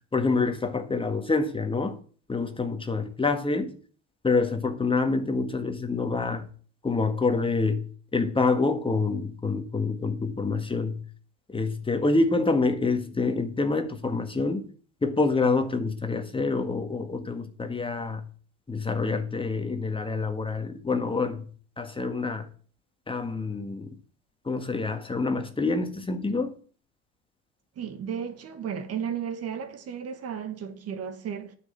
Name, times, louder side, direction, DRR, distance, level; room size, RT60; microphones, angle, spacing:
voice 1, 0.1-2.0 2.3-3.7 4.2-6.5 6.8-7.9 8.1-11.0 11.5-14.7 15.0-18.2 18.7-21.5 21.8-22.5 23.1-23.9 24.5-26.5, left 3 dB, 15° left, 1.6 m, -26 dB
voice 2, 27.8-31.6, right 8 dB, 45° right, 1.7 m, -34 dB
9.6 x 6.5 x 7.9 m
hypercardioid pair, 85°, 35 cm